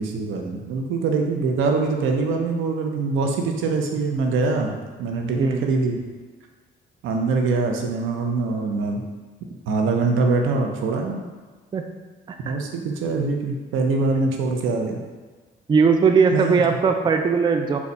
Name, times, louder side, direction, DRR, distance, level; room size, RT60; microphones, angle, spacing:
voice 1, 0.0-6.0 7.0-9.0 9.7-11.2 12.4-15.0 16.3-16.6, right 3 dB, 85° right, 2 dB, 0.6 m, -23 dB
voice 2, 5.4-5.8 11.7-11.9 12.3-12.5 15.7-17.8, right 5 dB, 25° right, 5 dB, 0.3 m, -19 dB
4.2 x 2.4 x 4.0 m, 1.4 s
cardioid pair, 90°, 20 cm